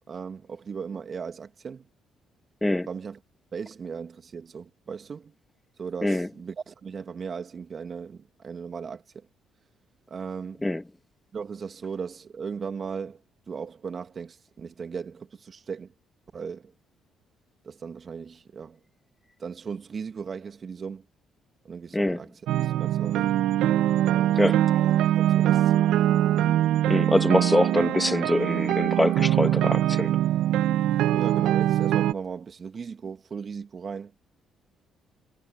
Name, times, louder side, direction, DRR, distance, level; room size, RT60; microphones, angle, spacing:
voice 1, 0.1-1.9 2.9-3.2 3.5-5.3 5.8-9.3 10.1-10.6 11.3-13.2 13.5-15.9 16.3-16.7 17.6-18.8 19.4-21.1 21.6-22.3 22.6-23.4 24.1-24.4 25.1-25.9 27.1-27.3 31.1-34.1, right 6 dB, 45° right, 2.8 m, -37 dB
sound 1, 22.5-32.1, right 12 dB, 75° right, 1.7 m, -23 dB
voice 2, 26.9-30.1, left 1 dB, 10° left, 2.3 m, -24 dB
supercardioid pair, 60°, 0 cm